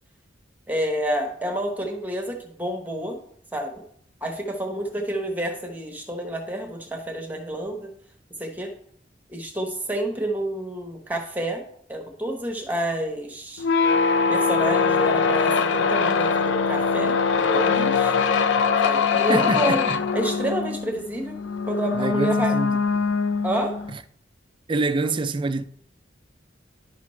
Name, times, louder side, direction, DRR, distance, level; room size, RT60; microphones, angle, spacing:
voice 1, 0.7-3.2 3.5-3.8 4.2-7.9 8.4-8.7 9.3-11.6 11.9-13.6 14.3-18.1 18.8-19.8 20.1-21.4 21.7-22.5 23.4-23.7, right 1 dB, 10° right, 1.0 m, -29 dB
sound 1, 13.6-23.9, left 5 dB, 80° left, 0.5 m, -22 dB
voice 2, 19.3-20.0 21.9-22.8 23.9-24.0 24.7-25.6, right 3 dB, 25° right, 0.4 m, -26 dB
10.5 x 5.9 x 3.2 m
head